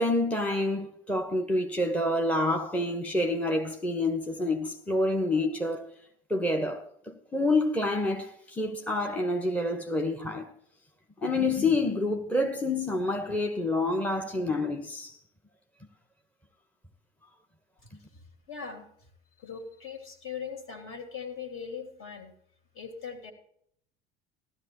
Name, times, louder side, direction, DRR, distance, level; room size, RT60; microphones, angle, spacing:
voice 1, 0.0-5.9 6.3-10.5 11.2-15.2, left 2 dB, 5° left, 1.1 m, -28 dB
voice 2, 17.8-18.9 19.4-22.3 22.7-23.3, left 6 dB, 45° left, 3.0 m, -40 dB
16.5 x 13.0 x 3.0 m
figure-of-eight pair, 65°, 29 cm